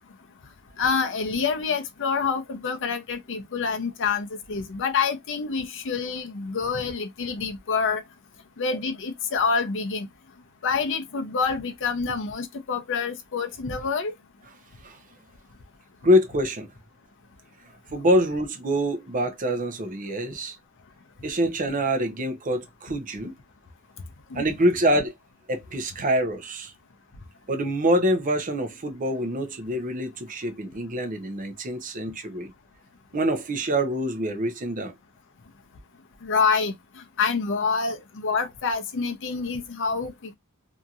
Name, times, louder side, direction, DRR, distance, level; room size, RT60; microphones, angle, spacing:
voice 1, 0.8-8.0 8.6-10.1 10.6-14.1 24.3-24.5 36.2-40.3, left 5 dB, 60° left, 0.6 m, -27 dB
voice 2, 16.0-16.7 17.9-20.5 21.2-23.3 24.3-25.1 25.5-26.7 27.5-32.5 33.1-34.9, equal, 35° right, 0.6 m, -25 dB
2.8 x 2.7 x 2.4 m
head